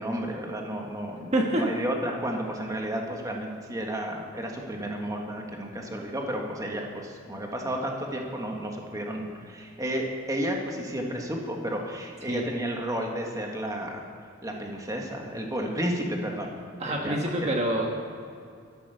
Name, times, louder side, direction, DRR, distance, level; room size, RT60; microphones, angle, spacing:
voice 1, 0.0-14.0 14.4-16.5 16.8-17.2 17.4-17.5, right 1 dB, 15° right, 1 dB, 1.6 m, -32 dB
voice 2, 1.3-1.6 12.3-12.4 16.8-17.9, right 1 dB, 35° right, 0 dB, 1.4 m, -26 dB
13.0 x 11.5 x 6.9 m, 2.4 s
head